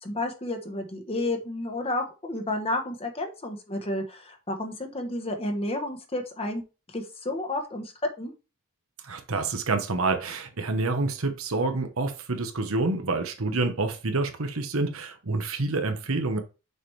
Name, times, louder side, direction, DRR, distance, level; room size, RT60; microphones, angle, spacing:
voice 1, 0.0-6.6 6.9-8.3, left 1 dB, 30° left, 1.1 m, -31 dB
voice 2, 9.0-16.4, right 3 dB, 70° right, 1.1 m, -28 dB
6.6 x 4.9 x 3.3 m
head